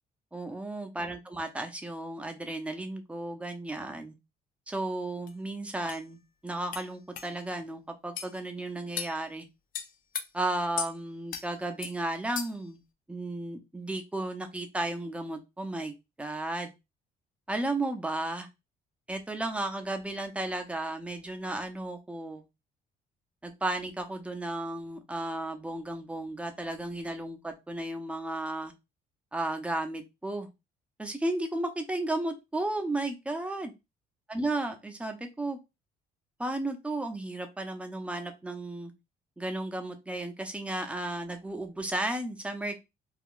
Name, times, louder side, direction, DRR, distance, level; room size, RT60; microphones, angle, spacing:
voice 1, 0.3-4.2 4.7-9.5 10.3-12.8 13.1-16.7 17.5-18.5 19.1-22.4 23.4-28.7 29.3-30.5 31.0-33.7 34.3-35.6 36.4-38.9 39.4-42.8, right 2 dB, 5° right, 5 dB, 0.6 m, -34 dB
sound 1, 5.3-5.4 5.9-6.0 6.7-6.9 7.2-7.3 8.2-8.3 9.0-9.2 9.7-10.3 10.8-10.9 11.3-11.5 11.8-12.0 12.4-12.7, left 8 dB, 55° left, 0.5 m, -36 dB
2.4 x 2.2 x 3.6 m, 0.24 s
cardioid pair, 110°, 17 cm